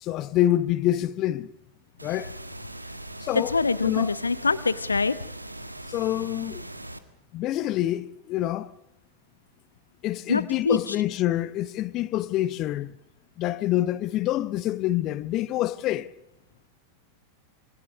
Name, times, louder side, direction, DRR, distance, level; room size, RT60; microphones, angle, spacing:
voice 1, 0.0-1.5 2.0-2.3 3.2-3.6 3.8-4.1 5.9-6.6 7.3-8.7 10.0-13.0 13.4-16.1, left 14 dB, 35° left, 0.9 m, -26 dB
sound 1, 2.0-7.0, right 1 dB, 85° right, 1.7 m, -40 dB
voice 2, 3.3-5.2 10.3-10.9, left 4 dB, 80° left, 1.0 m, -24 dB
26.0 x 23.5 x 6.4 m
figure-of-eight pair, 90°, 0 cm